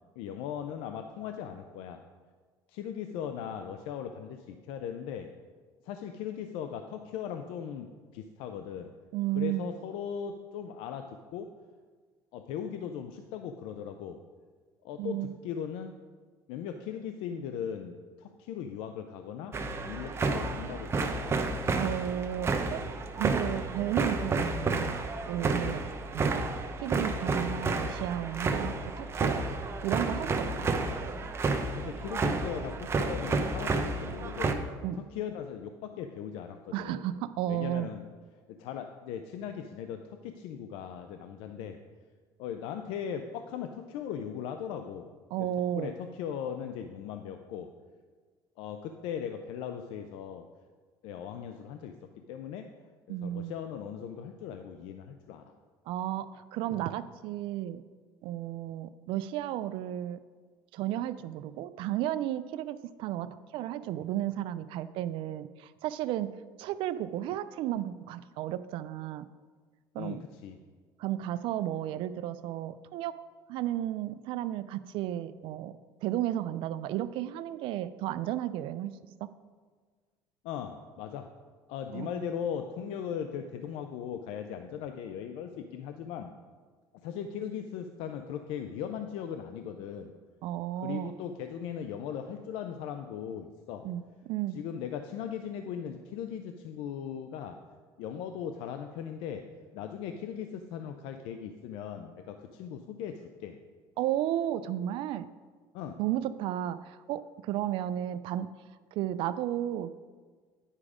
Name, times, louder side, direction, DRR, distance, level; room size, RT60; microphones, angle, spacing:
voice 1, 0.2-2.0 2.7-5.3 5.8-8.9 9.4-11.5 12.3-14.2 14.8-15.9 16.5-19.5 19.8-21.3 25.6-25.8 31.7-34.6 35.0-37.0 37.5-38.0 38.5-41.8 42.4-45.1 45.4-45.5 45.7-47.7 48.6-50.4 51.0-51.9 52.3-52.7 53.1-55.5 70.0-70.6 80.4-81.3 81.7-86.3 87.0-90.1 90.8-93.9 94.5-97.6 98.0-99.4 99.7-103.6 105.7-106.0, left 8 dB, 80° left, 7 dB, 0.5 m, -38 dB
voice 2, 9.1-9.7 15.0-15.3 21.7-22.8 23.2-25.0 25.3-25.8 26.1-26.5 26.8-29.5 29.8-30.7 34.8-35.0 36.7-37.9 45.3-45.9 53.1-53.5 55.9-57.8 58.2-60.2 60.7-66.3 66.6-69.3 69.9-70.2 71.0-73.1 73.5-75.8 76.0-79.0 81.9-82.2 90.4-91.1 93.8-94.6 104.0-105.3 106.0-108.5 108.9-110.0, right 12 dB, 70° right, 13 dB, 0.4 m, -33 dB
sound 1, 19.5-34.5, right 3 dB, 30° right, 0.7 m, -31 dB
9.8 x 4.9 x 4.9 m, 1.5 s
cardioid pair, 110°, 9 cm